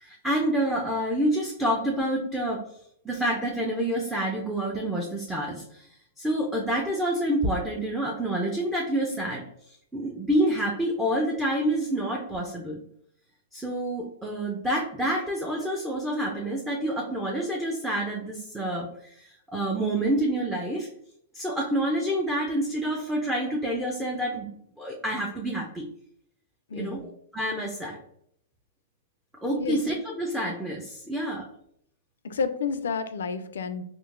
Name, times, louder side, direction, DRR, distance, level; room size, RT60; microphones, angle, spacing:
voice 1, 0.0-2.6 3.0-5.9 6.2-9.4 9.9-12.8 13.5-20.9 21.3-24.5 24.8-25.9 26.7-28.0 29.4-31.5, right 1 dB, 5° right, -2 dB, 0.4 m, -28 dB
voice 2, 26.7-27.1 29.5-29.8 32.2-33.8, left 5 dB, 80° left, 10 dB, 0.3 m, -30 dB
3.7 x 2.4 x 2.4 m, 0.70 s
hypercardioid pair, 125°, 0 cm